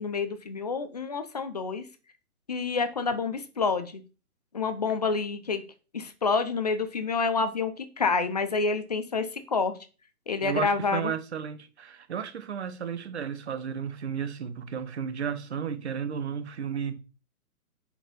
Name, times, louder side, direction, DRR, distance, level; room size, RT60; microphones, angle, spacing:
voice 1, 0.0-1.8 2.5-4.0 4.5-5.6 5.9-9.8 10.3-11.1, left 4 dB, 25° left, 0.6 m, -28 dB
voice 2, 10.4-17.0, right 7 dB, 45° right, 1.1 m, -33 dB
7.3 x 4.6 x 5.2 m
hypercardioid pair, 160°, 45 cm